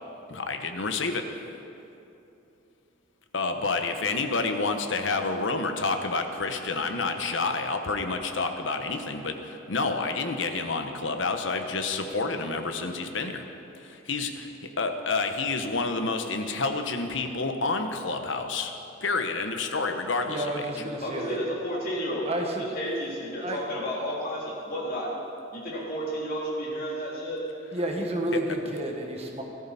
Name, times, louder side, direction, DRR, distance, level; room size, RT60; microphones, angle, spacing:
voice 1, 0.3-1.2 3.3-13.4 13.8-18.7 19.0-20.4 28.3-28.4, left 3 dB, 70° left, 6 dB, 1.1 m, -29 dB
voice 2, 20.3-21.4 22.2-22.6 23.4-23.6 27.7-29.4, right 1 dB, 30° right, 1 dB, 1.5 m, -31 dB
voice 3, 21.0-22.3 22.6-25.2 25.5-27.4, equal, 50° left, -5 dB, 3.4 m, -32 dB
18.0 x 13.5 x 4.3 m, 2.8 s
head